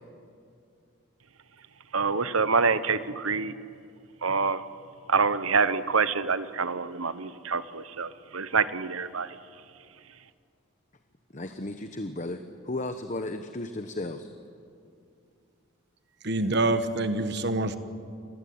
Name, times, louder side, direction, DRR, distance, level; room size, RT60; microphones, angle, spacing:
voice 1, 1.9-3.5 4.2-4.6 5.1-9.4, right 4 dB, 80° right, 14 dB, 1.1 m, -26 dB
voice 2, 11.3-14.3, left 2 dB, 35° left, 7 dB, 1.1 m, -34 dB
voice 3, 16.2-17.8, right 2 dB, 50° right, 10 dB, 1.4 m, -26 dB
27.5 x 20.5 x 9.6 m, 2.4 s
head